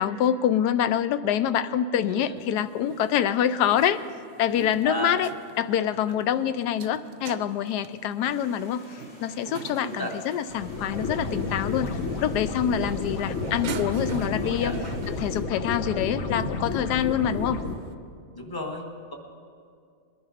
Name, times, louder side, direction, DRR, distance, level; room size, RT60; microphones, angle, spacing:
voice 1, 0.0-4.0 4.4-5.3 5.6-14.8 15.1-17.6, left 9 dB, 80° left, 13 dB, 1.1 m, -26 dB
voice 2, 2.0-2.4 4.8-5.2 9.8-10.2 14.4-14.8 18.4-19.1, equal, 15° left, 1 dB, 1.3 m, -34 dB
sound 1, 2.4-17.9, right 6 dB, 60° right, 0.7 m, -44 dB
Stream, 8.2-15.4, equal, 35° left, 3.1 m, -51 dB
sound 2, 10.5-17.7, left 3 dB, 55° left, 1.2 m, -31 dB
21.5 x 10.5 x 5.0 m, 2.3 s
omnidirectional pair, 1.8 m